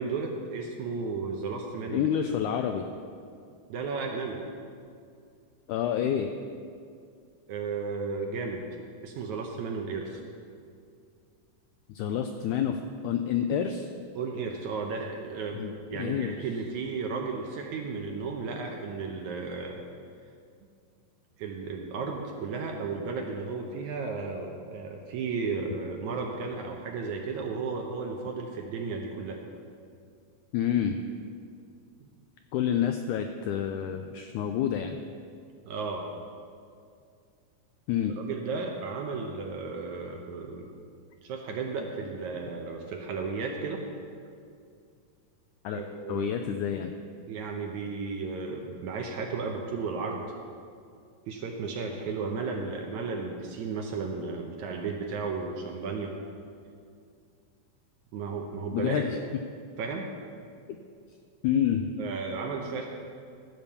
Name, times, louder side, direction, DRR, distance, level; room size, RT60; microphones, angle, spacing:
voice 1, 0.0-2.1 3.7-4.4 7.5-8.7 9.0-10.2 14.2-15.6 15.9-19.8 21.4-29.4 32.0-32.1 35.7-36.1 38.2-40.7 41.2-43.8 45.7-46.3 47.3-50.2 51.3-56.1 58.1-59.0 59.8-60.1 62.0-62.9, right 4 dB, 75° right, 2 dB, 1.9 m, -34 dB
voice 2, 1.9-2.9 5.7-6.3 11.9-13.9 15.5-16.3 30.5-31.0 32.5-35.0 37.9-38.2 45.6-45.8 46.1-46.9 58.7-59.2 60.7-60.8 61.4-61.9, left 9 dB, 85° left, 6 dB, 1.7 m, -28 dB
15.0 x 5.3 x 7.0 m, 2.3 s
omnidirectional pair, 4.0 m